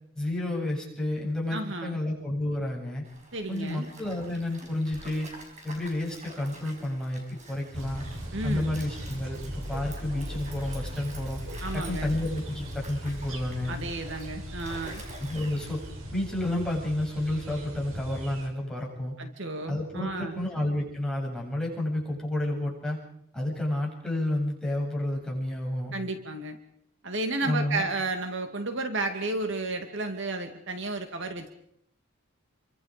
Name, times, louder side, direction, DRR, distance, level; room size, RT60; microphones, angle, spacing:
voice 1, 0.2-3.0 3.5-5.4 5.6-8.0 8.4-11.4 11.7-13.7 15.2-15.9 16.1-19.1 19.7-23.0 23.3-25.9 27.4-27.9, left 1 dB, 5° left, -3 dB, 7.9 m, -30 dB
voice 2, 1.5-2.0 3.3-3.9 8.3-8.7 11.6-12.1 13.7-15.0 19.2-20.4 25.9-26.6 27.0-31.5, right 2 dB, 60° right, 6 dB, 2.3 m, -32 dB
Stream, 3.0-16.1, right 2 dB, 35° right, 5.9 m, -48 dB
sound 1, 7.7-18.5, equal, 80° right, 5.9 m, -38 dB
29.5 x 24.5 x 5.1 m, 0.71 s
head